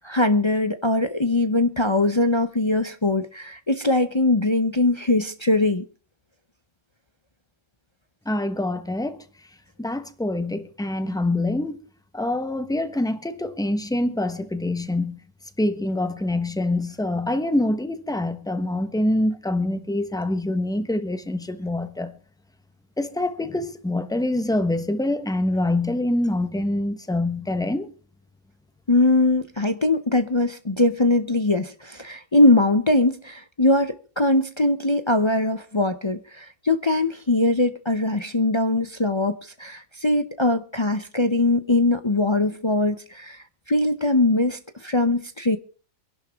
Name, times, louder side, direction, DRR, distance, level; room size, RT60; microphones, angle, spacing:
voice 1, 0.0-5.8 28.9-45.6, left 2 dB, 30° left, 0.6 m, -21 dB
voice 2, 8.2-9.2 9.8-11.8 12.1-15.2 15.6-22.1 23.0-27.9, left 1 dB, 5° left, 0.9 m, -25 dB
24.0 x 11.0 x 3.5 m
omnidirectional pair, 1.5 m